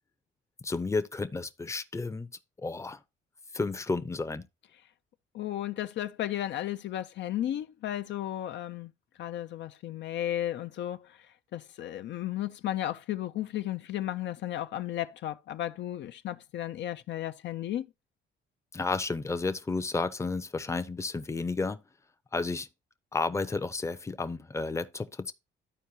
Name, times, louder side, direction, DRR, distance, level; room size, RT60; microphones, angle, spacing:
voice 1, 0.6-2.3 2.6-3.0 3.5-4.4 18.7-21.8 22.3-22.7 23.1-25.3, left 3 dB, 15° left, 0.6 m, -32 dB
voice 2, 5.3-8.9 9.2-17.9, left 12 dB, 65° left, 0.5 m, -34 dB
13.0 x 4.5 x 2.7 m
cardioid pair, 90°, 20 cm